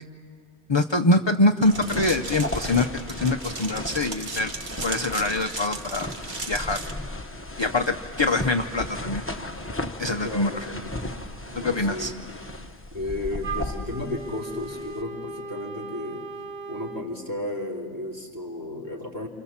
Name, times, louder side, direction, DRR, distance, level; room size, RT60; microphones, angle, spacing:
voice 1, 0.7-2.9 3.2-4.5 4.8-6.1 6.5-6.8 7.6-9.2 10.0-10.5 11.6-12.1, left 2 dB, 30° left, 6 dB, 0.6 m, -24 dB
sound 1, 1.6-15.0, left 1 dB, 15° left, 1.0 m, -35 dB
sound 2, 1.6-6.9, right 3 dB, 50° right, 1.5 m, -37 dB
voice 2, 10.0-10.7 11.5-12.2 12.9-16.2 16.7-19.3, left 2 dB, 20° right, -2 dB, 3.2 m, -34 dB
Wind instrument woodwind instrument, 13.4-17.1, right 3 dB, 75° right, 2.7 m, -37 dB
28.5 x 28.5 x 7.3 m, 2.2 s
omnidirectional pair, 1.1 m